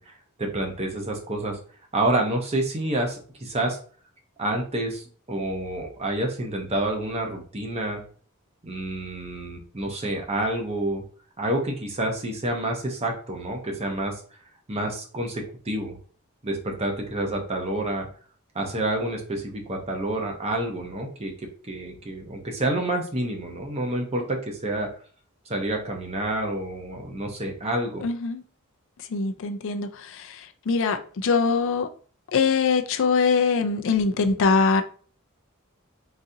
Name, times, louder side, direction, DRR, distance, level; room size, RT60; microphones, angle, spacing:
voice 1, 0.0-1.6 1.9-3.8 4.4-8.0 8.6-11.0 11.4-14.1 14.7-16.0 16.4-18.1 18.5-24.9 25.5-28.1, right 1 dB, 30° right, 0.7 m, -28 dB
voice 2, 28.0-28.4 29.1-30.4 30.7-31.9 32.3-34.8, left 5 dB, 60° left, 0.4 m, -22 dB
3.9 x 2.5 x 2.6 m
head